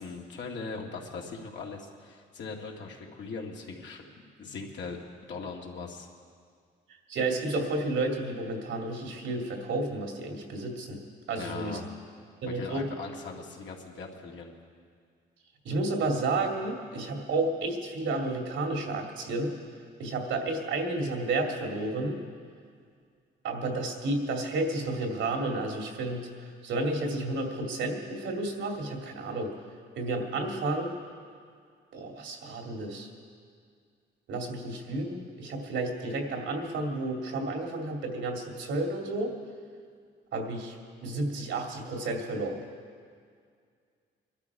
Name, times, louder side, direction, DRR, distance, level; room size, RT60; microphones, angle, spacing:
voice 1, 0.0-4.0 4.4-5.0 5.3-6.1 11.3-11.9 12.4-14.5, left 4 dB, 65° left, -1 dB, 2.2 m, -40 dB
voice 2, 7.1-11.0 11.3-11.8 12.4-12.9 15.6-19.5 20.0-22.2 23.4-26.3 26.6-29.5 30.0-30.9 31.9-33.1 34.3-39.3 40.3-40.8 41.0-42.6, right 2 dB, 75° right, 1 dB, 2.5 m, -31 dB
22.5 x 12.0 x 4.8 m, 2.1 s
cardioid pair, 90°, 20 cm